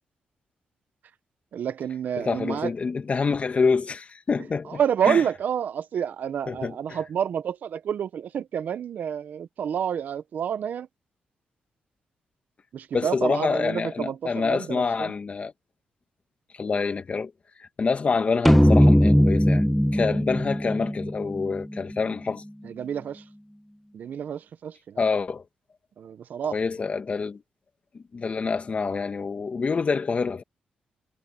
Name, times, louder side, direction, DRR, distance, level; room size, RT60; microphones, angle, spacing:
voice 1, 1.5-2.7 4.7-10.9 12.7-15.1 22.6-23.2 23.9-25.0 26.0-26.6, right 8 dB, 70° right, 1.3 m, -29 dB
voice 2, 2.2-4.8 5.1-5.2 6.5-7.0 12.9-15.5 16.5-17.3 17.6-19.7 19.9-22.4 25.0-25.4 26.5-27.4 27.9-30.4, left 5 dB, 45° left, 2.3 m, -27 dB
sound 1, 18.5-22.0, equal, ahead, 0.4 m, -19 dB
cardioid pair, 65°, 3 cm